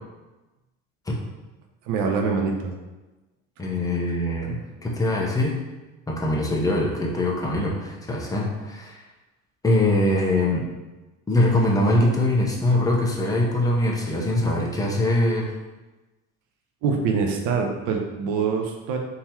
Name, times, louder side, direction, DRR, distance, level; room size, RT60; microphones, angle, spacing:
voice 1, 1.9-2.7 16.8-19.0, right 5 dB, 75° right, 2 dB, 0.7 m, -24 dB
voice 2, 3.6-5.6 6.1-9.0 9.6-10.6 11.3-15.5, left 1 dB, 10° left, -2 dB, 0.7 m, -22 dB
3.8 x 2.9 x 4.3 m, 1.1 s
cardioid pair, 150°, 30 cm